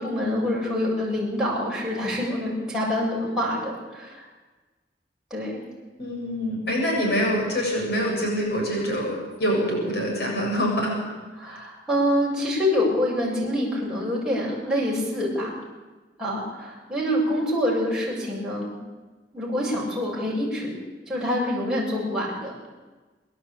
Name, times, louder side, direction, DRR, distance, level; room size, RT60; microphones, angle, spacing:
voice 1, 0.0-4.3 5.3-5.6 11.4-15.6 16.2-18.8 19.3-20.7 21.1-22.5, left 1 dB, 5° right, -6 dB, 7.1 m, -26 dB
voice 2, 6.0-11.0 11.4-11.6, equal, 65° left, -1 dB, 7.5 m, -25 dB
25.5 x 11.5 x 8.9 m, 1.3 s
head